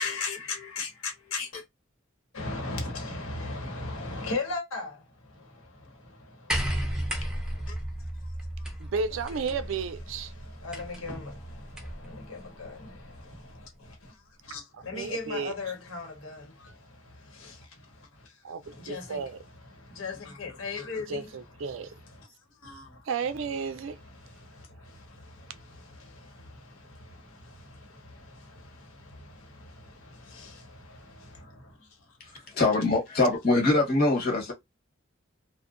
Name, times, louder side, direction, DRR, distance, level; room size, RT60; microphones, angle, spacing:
voice 1, 0.0-1.6 2.3-5.0 5.3-7.8 9.3-9.5 10.1-14.2 14.4-18.3 18.6-22.3 22.6-23.0 23.8-31.7, left 3 dB, 90° left, 1.0 m, -39 dB
sound 1, 6.5-12.1 13.2-13.3, equal, 5° right, 0.4 m, -34 dB
voice 2, 8.8-10.3 14.7-15.5 18.4-18.6 18.9-19.4 21.1-21.9 23.1-24.0, right 5 dB, 75° right, 0.4 m, -32 dB
voice 3, 32.5-34.5, left 2 dB, 50° left, 1.1 m, -23 dB
2.6 x 2.0 x 2.4 m
head